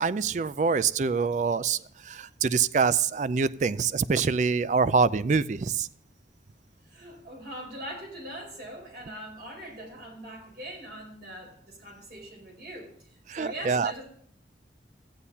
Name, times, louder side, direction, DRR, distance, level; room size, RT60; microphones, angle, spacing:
voice 1, 0.0-1.8 2.1-5.9 13.3-13.9, right 5 dB, 40° right, 16 dB, 0.4 m, -25 dB
voice 2, 6.9-12.9 13.3-14.0, right 1 dB, 55° right, -1 dB, 4.7 m, -41 dB
14.0 x 9.8 x 2.8 m, 0.67 s
head